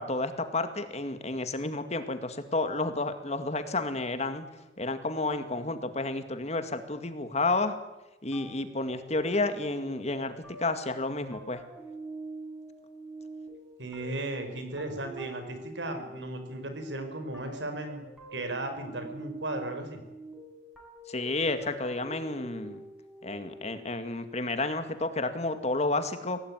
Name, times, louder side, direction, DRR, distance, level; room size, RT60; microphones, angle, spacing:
voice 1, 0.0-4.5 4.8-7.8 8.2-10.3 10.6-11.6 21.1-22.8 23.2-26.4, left 2 dB, 35° left, 9 dB, 2.1 m, -31 dB
sound 1, 8.3-23.7, right 2 dB, ahead, 7.2 m, -45 dB
voice 2, 13.8-20.0, right 2 dB, 75° right, 7 dB, 4.9 m, -36 dB
24.0 x 17.5 x 9.7 m, 1.0 s
head